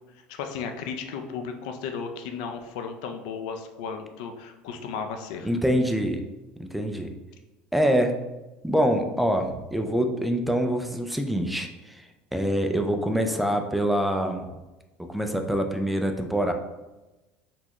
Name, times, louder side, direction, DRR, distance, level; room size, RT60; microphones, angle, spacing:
voice 1, 0.2-5.5, left 6 dB, 85° left, 5 dB, 0.4 m, -35 dB
voice 2, 5.4-6.2 6.6-7.1 7.7-8.1 8.6-12.0 12.3-14.4 15.1-16.5, equal, ahead, 4 dB, 0.3 m, -25 dB
4.1 x 2.3 x 2.9 m, 1.1 s
supercardioid pair, 125°, 4 cm